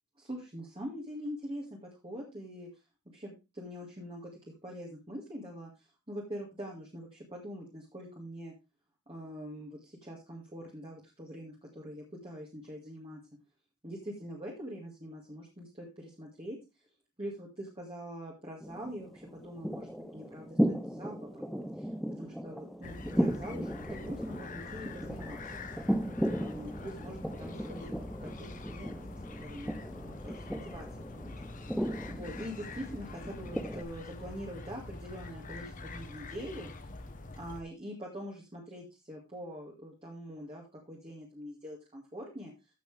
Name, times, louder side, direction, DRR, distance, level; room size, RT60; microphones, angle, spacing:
voice 1, 0.2-1.7 2.0-2.7 3.1-4.3 4.6-5.7 6.1-8.5 9.1-13.2 13.8-16.6 17.2-21.9 22.2-25.5 26.3-27.9 28.2-29.1 29.4-30.9 31.1-36.7 37.3-42.5, equal, 25° right, -2 dB, 2.2 m, -44 dB
sound 1, 18.6-33.8, equal, ahead, 0.8 m, -36 dB
sound 2, 22.8-37.6, left 2 dB, 40° left, 1.1 m, -45 dB
14.5 x 6.2 x 3.4 m, 0.27 s
head